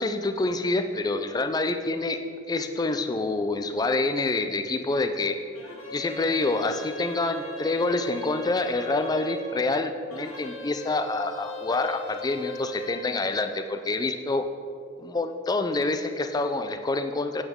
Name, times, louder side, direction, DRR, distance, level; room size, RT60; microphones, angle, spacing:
voice 1, 0.0-2.2 2.5-5.4 5.9-14.5 15.0-17.4, left 2 dB, 20° left, 8 dB, 0.4 m, -27 dB
sound 1, 5.5-9.6 10.1-13.1, equal, 85° left, 1.9 m, -39 dB
8.7 x 8.2 x 3.6 m, 2.3 s
head